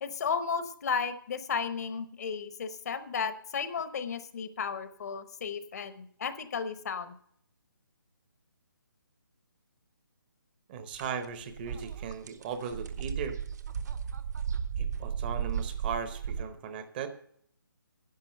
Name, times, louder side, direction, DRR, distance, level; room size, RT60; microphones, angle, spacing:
voice 1, 0.0-7.1, left 6 dB, 45° left, 12 dB, 0.9 m, -34 dB
voice 2, 10.7-13.4 14.8-17.1, right 6 dB, 25° right, 9 dB, 0.8 m, -37 dB
sound 1, 10.9-11.1 11.4-16.4, right 7 dB, 50° right, 0.9 m, -34 dB
10.5 x 6.1 x 7.6 m, 0.64 s
hypercardioid pair, 155°, 12 cm